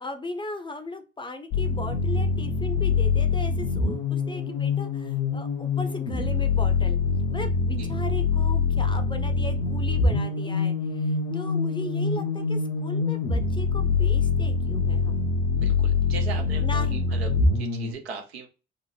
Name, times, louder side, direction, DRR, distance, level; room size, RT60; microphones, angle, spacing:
voice 1, 0.0-7.0 7.3-15.2 16.6-17.1, left 2 dB, 15° left, 7 dB, 0.5 m, -37 dB
sound 1, 1.5-17.9, left 4 dB, 65° left, 0.6 m, -25 dB
voice 2, 15.5-17.3 17.6-18.5, right 5 dB, 85° right, 4 dB, 0.5 m, -38 dB
2.8 x 2.0 x 2.3 m, 0.30 s
figure-of-eight pair, 40°, 30 cm